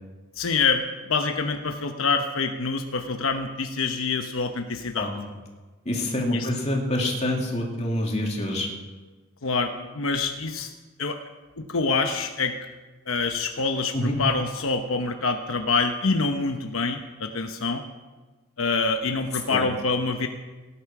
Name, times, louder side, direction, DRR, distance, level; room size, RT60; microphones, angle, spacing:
voice 1, 0.4-5.1 6.3-6.5 9.4-10.7 11.0-11.2 11.7-12.5 13.1-17.8 18.6-20.3, left 4 dB, 80° left, 5 dB, 0.9 m, -26 dB
voice 2, 5.8-8.7 13.9-14.1 19.5-19.6, left 1 dB, 35° left, -1 dB, 2.7 m, -26 dB
18.0 x 10.0 x 6.0 m, 1.3 s
head